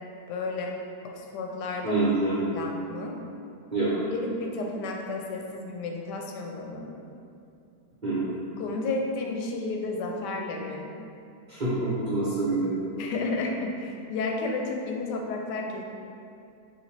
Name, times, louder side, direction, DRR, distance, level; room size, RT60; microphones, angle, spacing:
voice 1, 0.3-2.0 2.5-3.2 4.1-6.9 8.6-10.9 13.0-15.8, left 3 dB, 90° left, 1 dB, 1.2 m, -32 dB
voice 2, 1.8-2.4 3.7-3.9 8.0-8.3 11.5-12.7, right 2 dB, 40° right, -9 dB, 0.7 m, -26 dB
5.7 x 2.6 x 3.2 m, 2.6 s
omnidirectional pair, 1.8 m